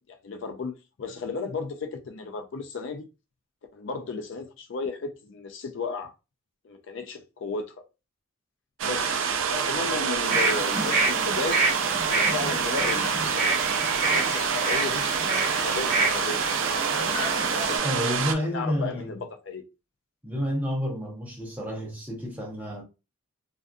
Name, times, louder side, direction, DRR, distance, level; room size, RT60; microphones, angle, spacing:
voice 1, 0.2-0.7 1.0-3.0 3.7-6.1 6.6-7.7 8.8-9.2 9.5-11.6 12.1-13.6 13.9-15.1 15.6-16.6 17.3-17.8 18.5-19.2 19.4-19.6, left 4 dB, 55° left, 0.4 m, -34 dB
sound 1, 8.8-18.3, right 6 dB, 65° right, 0.4 m, -27 dB
sound 2, 10.3-17.8, right 3 dB, 30° right, 1.1 m, -28 dB
voice 2, 17.8-19.2 20.2-22.8, equal, 10° right, 0.7 m, -30 dB
2.5 x 2.4 x 2.2 m
head